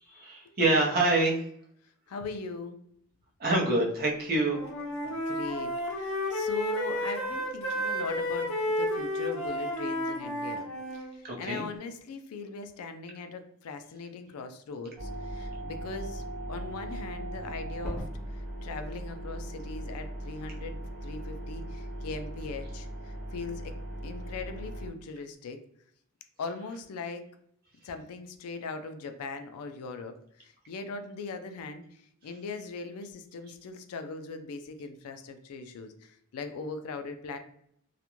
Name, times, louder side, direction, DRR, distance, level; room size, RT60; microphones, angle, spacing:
voice 1, 0.1-1.4 3.4-4.6 11.2-11.6, right 2 dB, 40° right, -2 dB, 0.6 m, -26 dB
voice 2, 2.1-2.8 5.0-16.2 16.5-20.7 21.0-23.8 24.0-25.6 26.4-27.3 27.8-37.4, left 4 dB, 80° left, 7 dB, 0.4 m, -40 dB
Wind instrument woodwind instrument, 4.3-11.1, left 1 dB, 65° left, 0.7 m, -31 dB
sound 1, 15.0-24.9, right 1 dB, 5° left, 0.6 m, -38 dB
2.4 x 2.1 x 2.9 m, 0.67 s
head